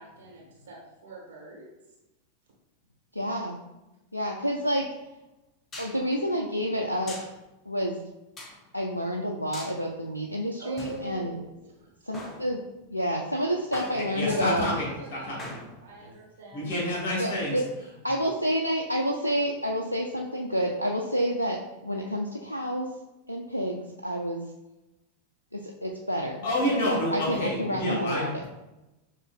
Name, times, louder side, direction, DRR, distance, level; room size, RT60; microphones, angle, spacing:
voice 1, 0.0-1.7 10.6-11.9 14.3-15.3 15.8-16.7, right 4 dB, 65° right, -3 dB, 1.3 m, -42 dB
voice 2, 3.1-3.6 4.1-4.9 5.8-7.2 7.7-8.0 8.7-11.4 12.1-12.6 12.9-14.7 17.2-17.6 18.0-22.9 23.3-24.4 25.5-26.5 26.8-28.3, equal, 85° left, 1 dB, 0.3 m, -29 dB
sound 1, 4.6-4.7 5.7-6.0 7.1-7.4 8.4-8.7 9.5-9.8 10.8-11.7 12.1-12.8 13.7-14.4 15.4-16.0, left 1 dB, 20° left, 0.6 m, -43 dB
voice 3, 13.9-15.5 16.0-16.1 16.5-17.5 26.4-28.5, left 1 dB, 45° left, -3 dB, 1.4 m, -29 dB
6.9 x 2.5 x 2.2 m, 1.0 s
figure-of-eight pair, 90°, 0 cm